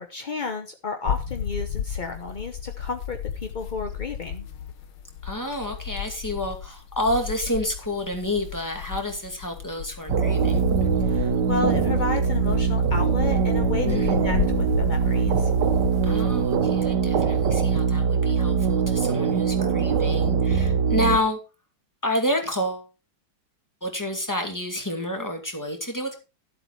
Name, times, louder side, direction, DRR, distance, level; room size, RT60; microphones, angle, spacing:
voice 1, 0.0-4.5 11.0-15.5, left 4 dB, 40° left, 5 dB, 0.7 m, -32 dB
sound 1, 1.1-16.6, left 9 dB, 70° left, 1.7 m, -33 dB
voice 2, 5.2-10.6 13.8-14.2 16.0-21.4 22.0-22.9 23.8-26.2, left 1 dB, 10° left, 4 dB, 2.1 m, -29 dB
sound 2, 10.1-21.2, right 6 dB, 65° right, 1.5 m, -22 dB
12.5 x 7.9 x 4.6 m, 0.30 s
omnidirectional pair, 2.1 m